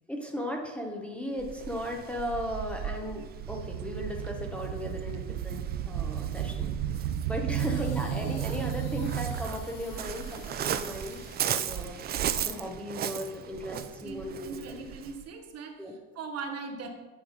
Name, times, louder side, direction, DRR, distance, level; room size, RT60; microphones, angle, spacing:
voice 1, 0.1-6.7 7.2-12.0 12.4-14.8 15.8-15.9, equal, 5° left, 0 dB, 1.0 m, -36 dB
Waves surf, 1.4-15.2, right 9 dB, 30° right, 0.4 m, -37 dB
sound 1, 3.4-9.7 10.2-10.4 11.4-11.5 12.2-12.3, right 9 dB, 80° right, 0.6 m, -33 dB
sound 2, 7.5-12.4 13.1-13.3, left 5 dB, 60° left, 1.6 m, -53 dB
voice 2, 14.0-16.9, right 4 dB, 45° right, 4 dB, 1.1 m, -40 dB
9.7 x 3.5 x 5.1 m, 1.2 s
supercardioid pair, 100°, 36 cm